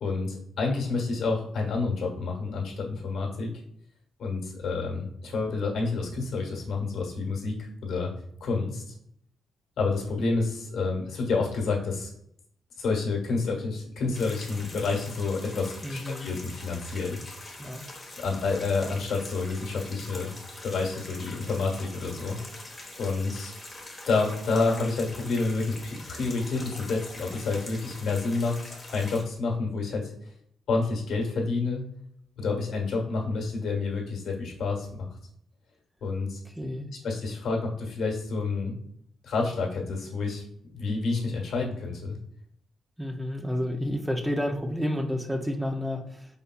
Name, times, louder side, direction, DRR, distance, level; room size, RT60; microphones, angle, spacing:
voice 1, 0.0-3.5 4.2-8.1 8.4-8.8 9.8-12.1 12.8-17.2 18.2-20.3 20.6-22.4 23.0-23.5 24.1-30.1 30.7-31.8 32.4-35.1 36.0-36.4 37.0-38.8 39.2-40.4 40.7-42.2, left 3 dB, 60° left, 0 dB, 1.4 m, -29 dB
sound 1, 14.1-29.2, left 2 dB, 10° left, 1.2 m, -43 dB
voice 2, 15.8-16.3 17.6-17.8 36.6-36.9 43.0-46.3, left 1 dB, 5° right, 5 dB, 0.5 m, -30 dB
5.2 x 4.0 x 2.3 m, 0.71 s
cardioid pair, 130°, 0 cm